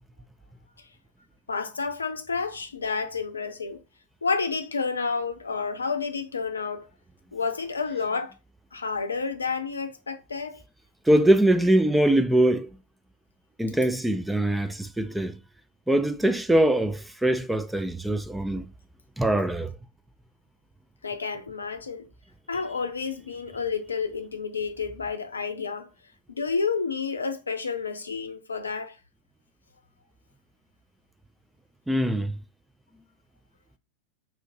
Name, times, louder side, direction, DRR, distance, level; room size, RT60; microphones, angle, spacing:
voice 1, 1.5-3.8 4.2-6.9 7.3-8.3 8.7-10.6 21.0-22.1 22.5-25.9 26.3-29.0, left 5 dB, 75° left, 0.5 m, -30 dB
voice 2, 11.1-12.7 13.6-15.4 15.9-18.7 19.2-19.7 31.9-32.4, right 1 dB, 5° right, 0.3 m, -22 dB
4.3 x 2.5 x 2.6 m
figure-of-eight pair, 90°, 0 cm